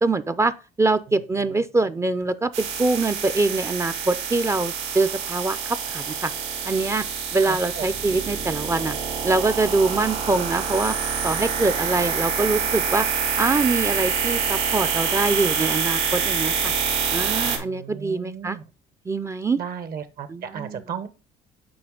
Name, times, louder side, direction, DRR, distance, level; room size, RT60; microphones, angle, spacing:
voice 1, 0.0-6.3 6.6-7.0 7.3-9.0 9.2-11.0 11.2-13.1 13.4-16.7 17.1-18.6 19.1-19.6 20.3-20.8, right 3 dB, 15° right, 0.4 m, -24 dB
voice 2, 1.1-1.6 7.4-8.2 17.4-18.6 19.6-21.1, right 7 dB, 60° right, 0.9 m, -36 dB
sound 1, 2.5-17.6, right 6 dB, 90° right, 2.9 m, -26 dB
7.8 x 4.7 x 3.7 m
cardioid pair, 110°, 17 cm